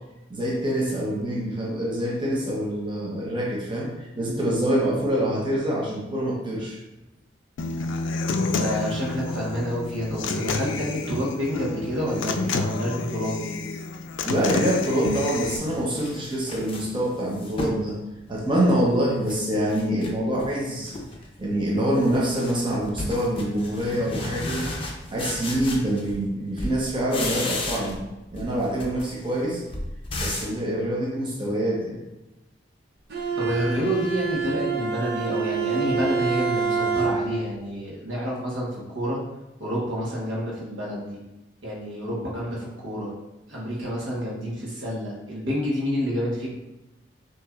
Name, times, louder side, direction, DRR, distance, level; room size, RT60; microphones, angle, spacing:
voice 1, 0.3-6.8 14.3-18.0 18.3-20.9 21.4-24.7 25.1-28.0 28.3-29.6 30.2-32.0, right 1 dB, 25° right, -4 dB, 0.8 m, -25 dB
Human voice / Acoustic guitar, 7.6-15.6, left 3 dB, 75° left, 0.4 m, -29 dB
voice 2, 8.4-13.5 33.4-39.2 39.6-41.2 41.6-43.1 43.5-46.5, equal, 85° right, -5 dB, 1.3 m, -28 dB
sound 1, 15.0-17.9 18.3-19.4 19.7-20.5 20.8-21.3 21.6-26.3 26.6-28.1 28.3-30.6, left 2 dB, 30° left, 0.6 m, -34 dB
Bowed string instrument, 33.1-37.5, right 5 dB, 55° right, 0.6 m, -26 dB
5.8 x 3.0 x 2.4 m, 0.97 s
head